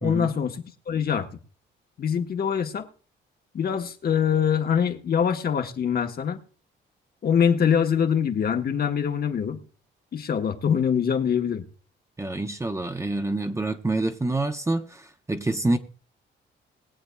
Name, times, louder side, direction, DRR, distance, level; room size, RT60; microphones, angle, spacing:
voice 1, 0.0-1.3 2.0-2.9 3.5-6.4 7.2-9.6 10.1-11.6, left 7 dB, 50° left, 1.3 m, -24 dB
voice 2, 12.2-15.8, right 2 dB, 15° right, 0.8 m, -27 dB
21.5 x 7.9 x 2.3 m
cardioid pair, 90°, 20 cm